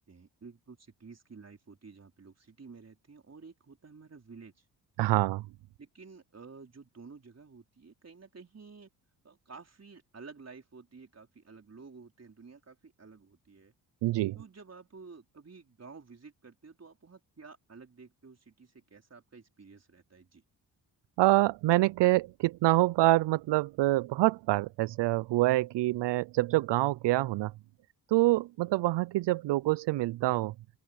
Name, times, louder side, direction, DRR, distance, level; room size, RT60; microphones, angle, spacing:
voice 1, 0.0-4.5 5.8-8.9 9.2-13.7 14.3-20.4, right 4 dB, 35° right, 4.6 m, -52 dB
voice 2, 5.0-5.5 14.0-14.4 21.2-27.5 28.1-30.5, right 18 dB, 70° right, 0.5 m, -26 dB
open air
cardioid pair, 75°, 44 cm